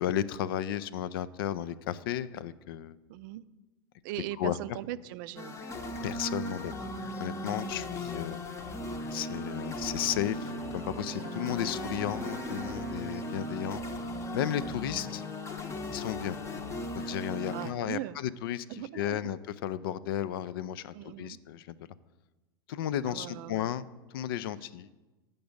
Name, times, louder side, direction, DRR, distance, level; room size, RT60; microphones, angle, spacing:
voice 1, 0.0-3.0 4.4-4.6 6.0-6.7 7.2-8.4 9.1-13.8 14.3-15.2 15.9-16.4 16.9-18.7 18.9-21.8 22.7-23.9 24.1-24.9, left 11 dB, 65° left, 17 dB, 0.4 m, -33 dB
voice 2, 3.1-3.4 4.0-5.6 8.5-8.7 11.5-11.7 14.7-15.1 17.5-18.2 18.7-19.2 20.9-21.4 23.1-23.7, right 14 dB, 55° right, 15 dB, 0.4 m, -40 dB
sound 1, 5.4-17.7, left 1 dB, 20° left, 0.8 m, -37 dB
Wind instrument woodwind instrument, 10.0-13.8, right 6 dB, 15° right, 0.8 m, -45 dB
7.6 x 5.3 x 6.9 m, 1.1 s
hypercardioid pair, 95°, 13 cm